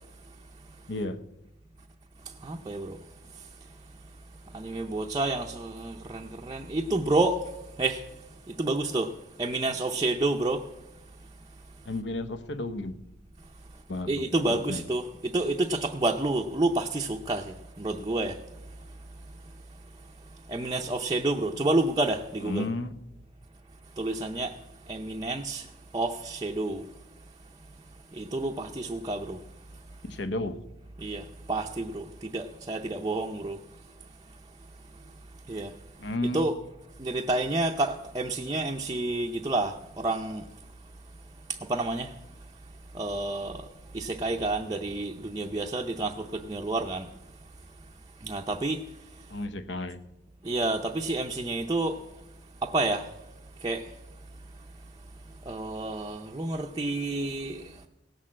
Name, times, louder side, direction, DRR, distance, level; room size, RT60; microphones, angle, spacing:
voice 1, 0.9-1.2 11.9-13.0 13.9-14.8 22.4-22.9 30.0-30.6 36.0-36.5 49.3-50.0, left 2 dB, 70° left, 0.9 m, -33 dB
voice 2, 2.4-3.0 4.5-7.4 7.8-8.0 8.5-9.1 9.4-10.6 14.1-18.4 20.5-22.7 24.0-24.5 24.9-25.7 25.9-26.8 28.1-29.4 31.0-33.6 35.5-35.7 36.3-36.5 37.0-40.4 41.7-42.1 42.9-43.6 43.9-47.1 48.2-48.8 50.4-52.0 52.6-53.1 53.6-53.8 55.5-57.7, right 2 dB, 20° right, 0.5 m, -29 dB
17.0 x 6.5 x 7.4 m
head